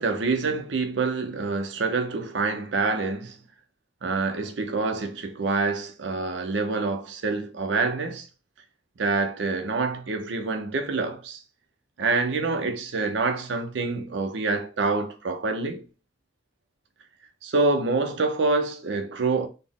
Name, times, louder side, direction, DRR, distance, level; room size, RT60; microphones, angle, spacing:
voice 1, 0.0-3.4 4.0-8.3 9.0-11.4 12.0-15.8 17.4-19.5, right 3 dB, 80° right, 0.6 m, -26 dB
4.1 x 2.0 x 3.5 m
head